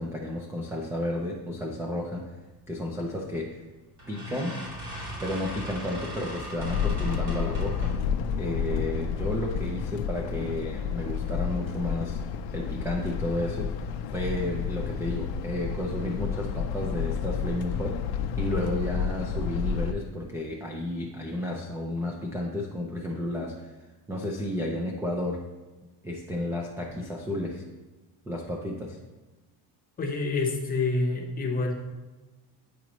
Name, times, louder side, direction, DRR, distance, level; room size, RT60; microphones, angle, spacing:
voice 1, 0.0-2.3 2.7-3.6 4.1-4.6 5.2-7.9 8.3-12.2 12.5-13.7 14.1-23.7 24.1-25.4 26.0-27.6 28.3-29.0, left 1 dB, 5° right, -1 dB, 0.3 m, -32 dB
sound 1, 3.2-3.5 4.0-8.1, equal, 45° right, 2.3 m, -39 dB
sound 2, 6.6-19.9, left 7 dB, 70° left, 0.5 m, -30 dB
voice 2, 30.0-31.7, left 3 dB, 20° left, 1 dB, 0.7 m, -27 dB
8.5 x 4.9 x 3.0 m, 1.2 s
cardioid pair, 170°, 39 cm